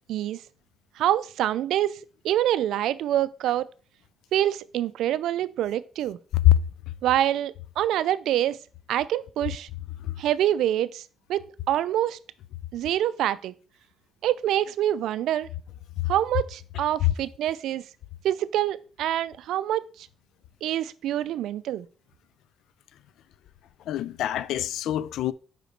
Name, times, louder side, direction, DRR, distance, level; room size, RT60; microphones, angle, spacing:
voice 1, 1.0-3.7 4.3-6.2 7.0-8.6 8.9-9.7 10.2-11.0 11.3-12.2 12.7-13.5 14.2-15.5 16.1-17.8 18.2-20.1 20.6-21.9, right 12 dB, 80° right, 0.4 m, -26 dB
voice 2, 23.9-25.3, left 13 dB, 80° left, 0.3 m, -23 dB
5.0 x 5.0 x 4.5 m
cardioid pair, 90°, 0 cm